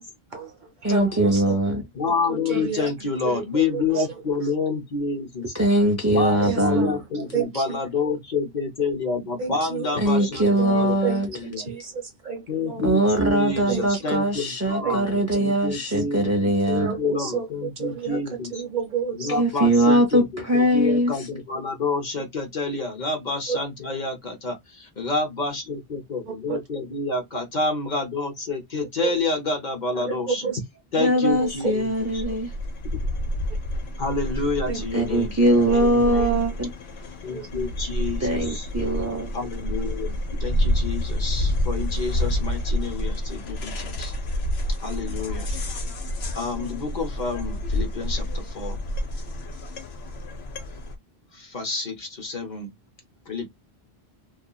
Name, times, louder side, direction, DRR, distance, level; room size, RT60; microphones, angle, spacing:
voice 1, 0.3-1.6 2.3-2.9 3.2-4.0 6.4-7.0 7.3-7.8 9.4-12.8 13.7-14.2 14.8-15.5 16.7-17.5 17.8-18.2 18.5-19.4 23.5-23.6 26.5-26.6 29.0-29.1 30.0-30.6 31.2-31.7 34.7-34.8 35.5-35.6 36.1-36.3 37.3-37.5, right 6 dB, 55° right, 0.9 m, -31 dB
voice 2, 0.8-1.8 5.5-6.9 10.0-11.3 12.8-16.9 19.4-21.1 31.0-32.5 34.9-36.7 38.2-39.3, right 1 dB, 20° right, 0.4 m, -21 dB
voice 3, 1.9-5.5 6.1-11.0 11.3-11.7 12.5-18.6 19.1-30.5 30.9-32.2 34.0-35.4 35.7-36.4 37.2-38.7 39.3-44.1 44.8-45.5 46.3-48.8 51.3-52.7 53.3-53.5, left 3 dB, 50° left, 0.8 m, -28 dB
sound 1, 31.3-51.0, left 1 dB, 90° left, 0.9 m, -29 dB
2.8 x 2.3 x 2.2 m
omnidirectional pair, 1.0 m